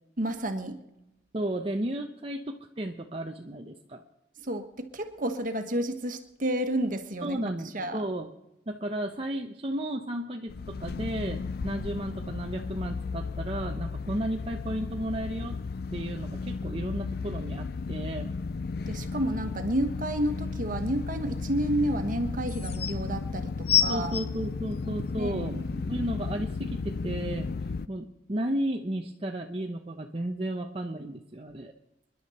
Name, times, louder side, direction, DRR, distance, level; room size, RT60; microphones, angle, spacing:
voice 1, 0.2-0.8 4.4-7.4 7.7-8.0 18.9-24.1 25.2-25.8, right 1 dB, 50° right, 7 dB, 1.6 m, -30 dB
voice 2, 1.3-4.0 7.2-8.3 8.7-15.6 15.9-18.3 23.9-25.6 25.9-31.7, right 1 dB, 30° right, 2 dB, 0.9 m, -33 dB
sound 1, 10.5-27.9, left 4 dB, 55° left, 0.5 m, -34 dB
sound 2, 22.4-22.9 23.7-25.3 26.0-26.1, left 9 dB, 35° left, 1.1 m, -27 dB
28.0 x 11.0 x 4.3 m, 0.91 s
head